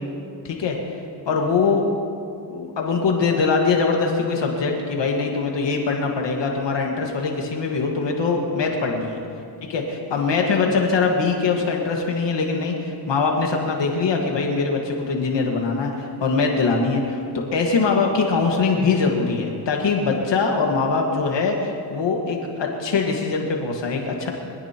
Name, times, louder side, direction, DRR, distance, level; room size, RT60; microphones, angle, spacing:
voice 1, 0.4-0.8 1.2-1.9 2.5-9.2 9.7-24.3, left 4 dB, 70° left, 1 dB, 1.8 m, -22 dB
23.5 x 17.0 x 3.0 m, 2.5 s
cardioid pair, 110°, 45 cm